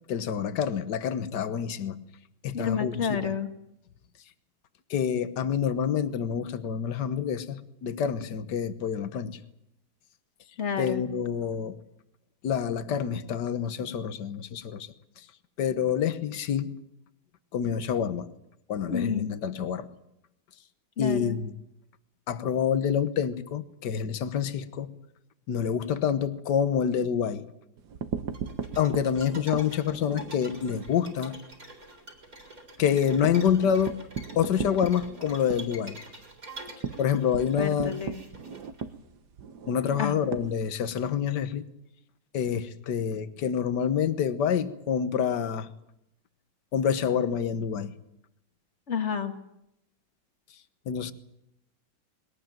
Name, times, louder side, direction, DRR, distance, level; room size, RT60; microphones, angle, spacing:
voice 1, 0.1-2.0 2.4-3.4 4.9-9.4 10.8-11.8 12.4-14.9 15.6-16.7 17.5-18.3 18.7-19.9 21.0-21.5 22.3-24.9 25.5-27.5 28.8-31.3 32.8-34.1 34.4-36.0 37.0-37.9 39.7-41.6 42.3-45.7 46.7-47.9 50.9-51.1, left 8 dB, 60° left, 1.7 m, -27 dB
voice 2, 2.5-3.5 10.6-11.0 18.9-19.3 21.0-21.4 37.6-38.2 40.0-40.2 48.9-49.3, left 6 dB, 35° left, 1.7 m, -30 dB
sound 1, 27.8-31.0 31.4-31.5 31.8-31.9 32.3-41.1, right 6 dB, 60° right, 1.6 m, -37 dB
sound 2, 28.3-38.8, right 1 dB, 40° right, 4.6 m, -47 dB
21.5 x 19.0 x 9.0 m
omnidirectional pair, 2.2 m